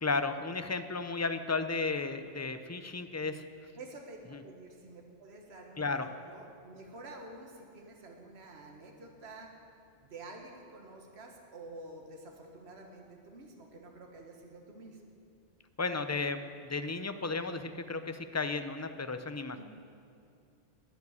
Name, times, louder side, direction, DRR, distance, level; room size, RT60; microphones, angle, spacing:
voice 1, 0.0-3.4 4.3-4.4 5.8-6.1 15.8-19.6, left 3 dB, 25° left, 9 dB, 0.3 m, -34 dB
voice 2, 3.7-9.5 10.0-15.0 19.6-19.7, right 2 dB, 60° right, 2 dB, 1.8 m, -49 dB
12.5 x 9.6 x 9.6 m, 2.4 s
omnidirectional pair, 1.2 m